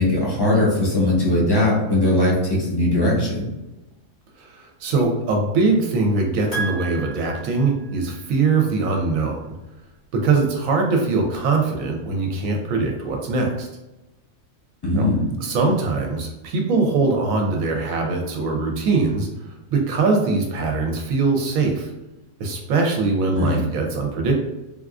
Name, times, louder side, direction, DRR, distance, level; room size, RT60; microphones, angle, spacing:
voice 1, 0.0-3.4 14.8-15.3 23.3-23.7, left 1 dB, 20° left, -4 dB, 0.7 m, -20 dB
voice 2, 4.4-9.5 10.2-13.7 15.0-15.1 15.4-19.3 19.7-21.9 22.4-24.3, right 3 dB, 70° right, 1 dB, 0.9 m, -22 dB
Piano, 6.5-8.2, right 4 dB, 85° left, 1.4 m, -32 dB
3.5 x 2.3 x 2.4 m, 0.97 s
omnidirectional pair, 1.5 m